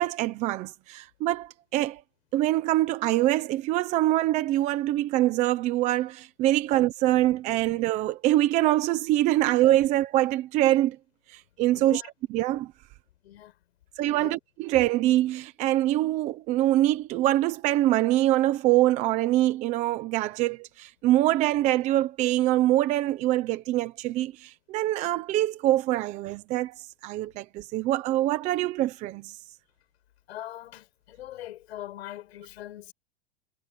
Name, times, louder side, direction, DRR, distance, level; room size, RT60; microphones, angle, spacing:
voice 1, 0.0-2.0 2.3-11.0 11.3-12.0 12.3-12.7 14.0-26.8 27.0-29.3, right 15 dB, 20° right, 0.9 m, -24 dB
voice 2, 11.7-12.1 13.2-13.5 14.1-14.3 30.3-32.9, left 13 dB, 70° left, 5.7 m, -41 dB
supercardioid pair, 175°, 33 cm